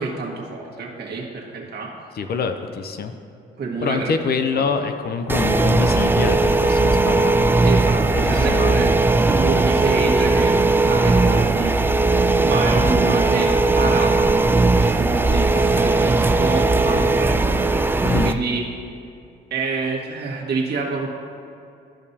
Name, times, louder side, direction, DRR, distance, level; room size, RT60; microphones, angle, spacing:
voice 1, 0.0-1.9 3.6-4.1 4.5-4.7 7.6-12.1 12.4-18.6 19.5-21.1, right 4 dB, 55° right, -2 dB, 1.6 m, -27 dB
voice 2, 2.2-3.1 3.8-7.5 8.2-8.9 9.4-9.6 16.9-17.1 18.0-18.4, left 5 dB, 50° left, 7 dB, 0.6 m, -25 dB
sound 1, 5.3-18.3, right 3 dB, 10° right, 0.3 m, -18 dB
13.5 x 5.2 x 2.8 m, 2.5 s
cardioid pair, 90°, 20 cm